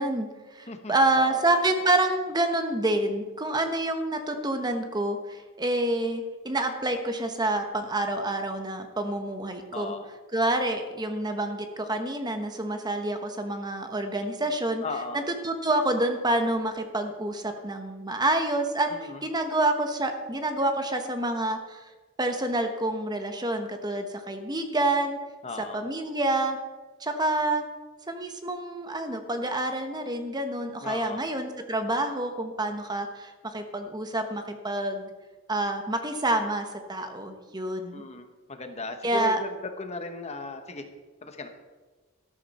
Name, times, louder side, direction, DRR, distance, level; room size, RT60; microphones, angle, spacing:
voice 1, 0.0-9.9 10.3-14.8 15.1-21.9 22.2-25.2 25.7-26.6 27.0-27.6 28.1-35.1 35.5-38.0 39.0-39.4, right 2 dB, 20° right, 6 dB, 1.1 m, -28 dB
voice 2, 0.7-1.4 9.7-10.1 14.4-14.5 14.8-15.2 18.9-19.2 25.4-25.8 30.8-31.2 37.9-39.5 39.8-40.9 41.2-41.5, left 3 dB, 30° left, 6 dB, 1.2 m, -36 dB
13.0 x 13.0 x 4.3 m, 1.3 s
head